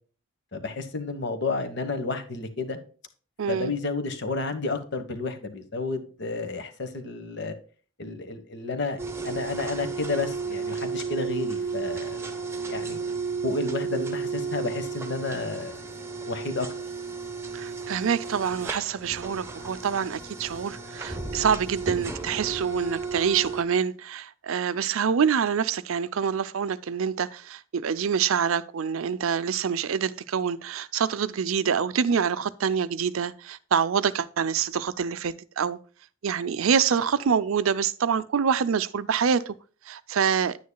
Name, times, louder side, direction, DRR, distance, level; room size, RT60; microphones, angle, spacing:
voice 1, 0.5-2.8 3.5-7.5 8.0-12.3 12.7-13.0 13.4-15.8 16.2-16.7, left 3 dB, 55° left, 1.2 m, -31 dB
voice 2, 3.4-3.7 17.5-35.8 36.2-39.5 39.9-40.6, right 7 dB, 80° right, 0.5 m, -26 dB
sound 1, 9.0-23.6, right 5 dB, 15° right, 0.8 m, -33 dB
9.7 x 9.3 x 2.3 m
head